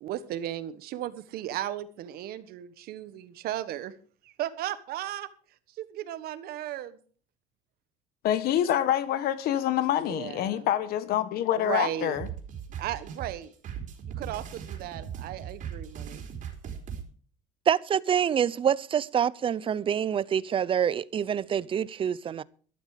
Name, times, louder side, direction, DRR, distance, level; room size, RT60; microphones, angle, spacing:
voice 1, 0.0-3.9 4.2-5.3 5.8-7.0 10.0-10.7 11.5-12.2 12.8-13.5 14.1-16.2, right 12 dB, 65° right, 1.5 m, -35 dB
voice 2, 8.2-12.3, left 11 dB, 65° left, 1.2 m, -26 dB
sound 1, 12.1-17.0, right 8 dB, 50° right, 3.7 m, -39 dB
voice 3, 17.7-22.4, right 8 dB, 30° right, 0.6 m, -26 dB
13.0 x 12.0 x 4.9 m
cardioid pair, 130°, 17 cm